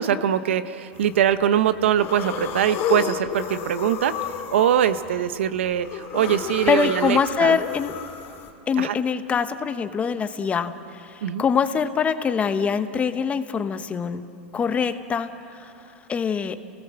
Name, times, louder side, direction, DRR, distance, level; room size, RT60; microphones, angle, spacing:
voice 1, 0.0-4.1 4.5-7.6 8.8-8.9 11.2-11.4, right 10 dB, 85° right, 12 dB, 0.9 m, -22 dB
sound 1, 1.0-1.4 1.8-8.5, left 9 dB, 40° left, 2.7 m, -32 dB
voice 2, 6.7-7.9 8.7-14.2 14.5-15.7 16.1-16.6, left 6 dB, 20° left, 10 dB, 1.1 m, -24 dB
29.0 x 18.0 x 7.6 m, 2.6 s
supercardioid pair, 130°, 6 cm